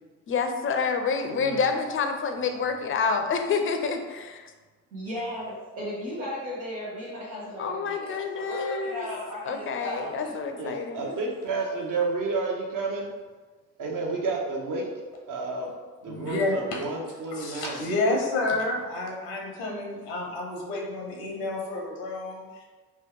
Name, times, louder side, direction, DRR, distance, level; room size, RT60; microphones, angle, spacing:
voice 1, 0.3-4.5 7.6-9.1 9.4-11.0, left 5 dB, 35° left, 5 dB, 0.5 m, -28 dB
voice 2, 1.3-1.7 10.6-13.1 13.8-14.9 15.3-15.7 16.0-17.9, right 3 dB, 55° right, 0 dB, 0.8 m, -30 dB
voice 3, 4.9-10.6 11.0-11.2, left 1 dB, 85° right, -9 dB, 0.9 m, -36 dB
voice 4, 16.1-16.8 17.3-22.6, left 2 dB, 85° left, 0 dB, 0.8 m, -30 dB
3.0 x 2.2 x 3.5 m, 1.3 s
hypercardioid pair, 50°, 39 cm